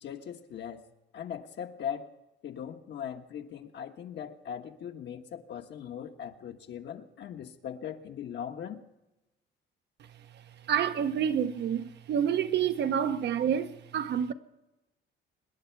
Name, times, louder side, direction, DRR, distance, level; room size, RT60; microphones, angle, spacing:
voice 1, 0.0-0.8 1.1-2.1 2.4-8.8, left 8 dB, 60° left, 1.4 m, -39 dB
voice 2, 10.7-14.3, right 8 dB, 55° right, 0.9 m, -28 dB
26.0 x 11.0 x 4.6 m
cardioid pair, 145°, 21 cm